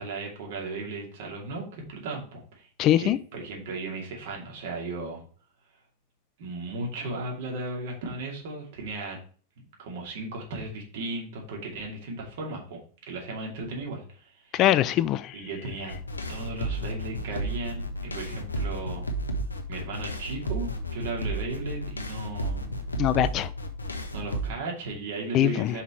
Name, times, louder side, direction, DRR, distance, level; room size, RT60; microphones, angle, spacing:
voice 1, 0.0-2.7 3.0-5.2 6.4-9.2 9.8-12.8 13.1-14.6 15.3-15.9 16.3-19.0 19.7-22.8 24.1-25.8, right 2 dB, 55° right, 2.6 m, -36 dB
voice 2, 2.8-3.2 14.5-15.4 23.0-23.5 25.3-25.8, left 13 dB, 35° left, 0.3 m, -22 dB
sound 1, 15.9-24.5, right 1 dB, 80° left, 1.0 m, -33 dB
5.7 x 5.5 x 4.4 m
figure-of-eight pair, 90°, 0 cm